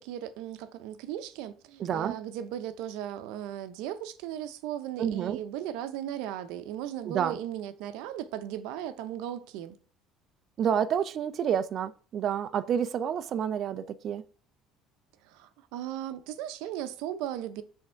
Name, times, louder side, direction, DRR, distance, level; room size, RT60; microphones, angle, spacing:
voice 1, 0.0-9.8 15.2-17.6, right 11 dB, 80° right, 0.8 m, -37 dB
voice 2, 1.8-2.1 5.0-5.4 7.1-7.4 10.6-14.2, right 8 dB, 40° right, 0.5 m, -29 dB
7.7 x 3.6 x 5.6 m
cardioid pair, 150°, 0 cm